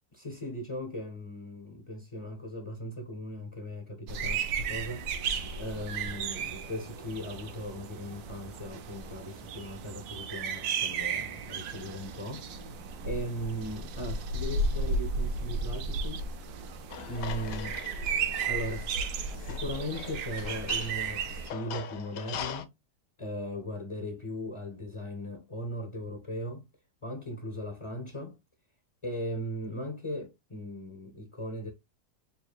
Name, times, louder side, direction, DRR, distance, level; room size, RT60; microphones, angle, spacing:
voice 1, 0.1-5.1 5.6-12.5 13.0-16.3 17.0-17.8 18.5-22.7 23.2-26.7 27.0-28.4 29.0-31.7, equal, 40° left, 0.4 m, -38 dB
sound 1, 4.1-21.5, right 4 dB, 75° right, 1.1 m, -34 dB
sound 2, 16.9-22.6, left 8 dB, 70° left, 0.9 m, -42 dB
6.8 x 2.4 x 2.4 m
omnidirectional pair, 1.7 m